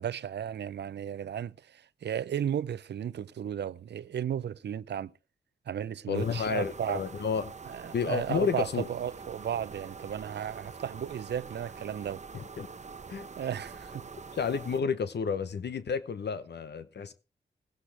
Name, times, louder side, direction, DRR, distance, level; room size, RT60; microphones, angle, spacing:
voice 1, 0.0-5.1 5.7-7.0 7.7-12.2 13.4-14.1, right 9 dB, 75° right, 0.5 m, -34 dB
voice 2, 6.1-7.5 7.9-8.9 12.3-12.7 13.1-13.3 14.3-17.1, left 6 dB, 70° left, 0.8 m, -31 dB
sound 1, 6.1-14.8, right 4 dB, 40° right, 0.8 m, -45 dB
17.0 x 10.0 x 3.3 m
cardioid pair, 50°, 18 cm